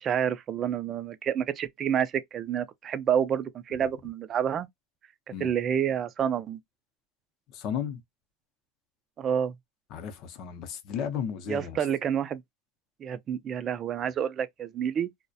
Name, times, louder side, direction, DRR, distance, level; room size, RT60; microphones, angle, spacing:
voice 1, 0.0-4.7 5.4-6.6 9.2-9.5 11.5-12.4 13.0-15.1, right 8 dB, 30° right, 0.3 m, -28 dB
voice 2, 7.5-8.0 9.9-11.8, left 8 dB, 45° left, 0.6 m, -34 dB
2.3 x 2.1 x 2.5 m
supercardioid pair, 140°, 0 cm